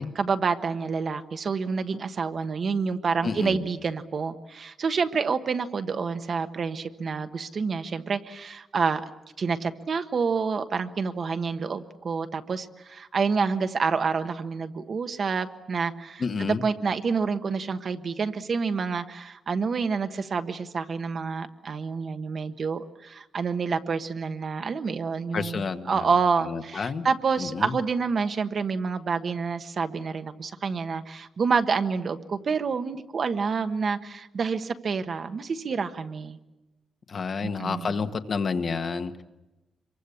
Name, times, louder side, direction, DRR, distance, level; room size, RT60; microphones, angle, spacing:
voice 1, 0.1-9.0 9.4-25.6 25.9-36.4 37.4-37.9, right 5 dB, 40° right, 8 dB, 1.3 m, -28 dB
voice 2, 3.2-3.6 16.2-16.6 25.3-26.1 26.4-27.1 27.4-27.8 37.1-39.2, left 5 dB, 40° left, 7 dB, 1.5 m, -30 dB
26.5 x 23.5 x 8.5 m, 1.0 s
wide cardioid pair, 150°, 0 cm